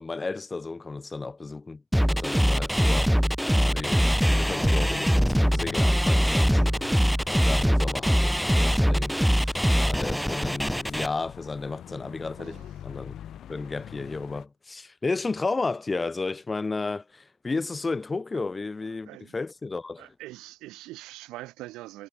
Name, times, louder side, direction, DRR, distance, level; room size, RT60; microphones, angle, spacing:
voice 1, 0.0-1.8 2.1-3.1 3.4-6.8 7.3-13.1 13.5-20.1, left 3 dB, 20° left, 8.0 m, -33 dB
sound 1, 1.9-11.1, equal, ahead, 0.4 m, -22 dB
sound 2, 4.3-14.5, left 10 dB, 55° left, 6.1 m, -45 dB
voice 2, 12.4-12.7 18.3-18.4 19.1-19.3 20.0-22.1, right 18 dB, 70° right, 4.2 m, -43 dB
hypercardioid pair, 75°, 0 cm